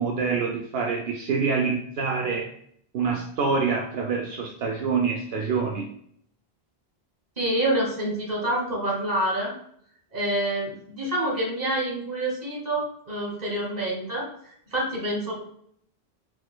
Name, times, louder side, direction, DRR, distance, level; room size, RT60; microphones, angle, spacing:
voice 1, 0.0-2.5 2.9-5.9, right 5 dB, 75° right, 1 dB, 0.8 m, -26 dB
voice 2, 7.4-9.6 10.1-15.3, right 1 dB, 40° right, -2 dB, 1.4 m, -27 dB
4.4 x 4.2 x 2.2 m, 0.66 s
omnidirectional pair, 1.0 m